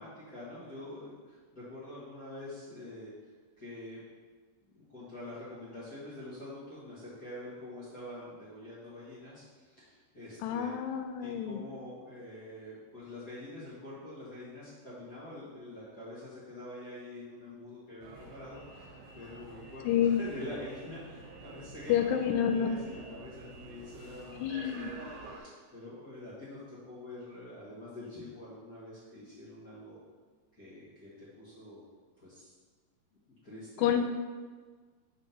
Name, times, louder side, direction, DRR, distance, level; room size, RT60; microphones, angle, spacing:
voice 1, 0.0-3.1 3.6-4.0 4.6-10.7 11.2-25.0 25.3-30.0 30.5-31.9 32.2-32.5 33.3-33.9, left 1 dB, 45° left, -11 dB, 1.3 m, -46 dB
voice 2, 10.4-11.6 19.8-20.2 21.9-22.8 24.4-24.9 33.8-34.0, left 9 dB, 80° left, 5 dB, 1.9 m, -28 dB
sound 1, 18.0-25.4, right 3 dB, 75° right, 2.4 m, -49 dB
5.4 x 3.6 x 5.7 m, 1.5 s
omnidirectional pair, 3.9 m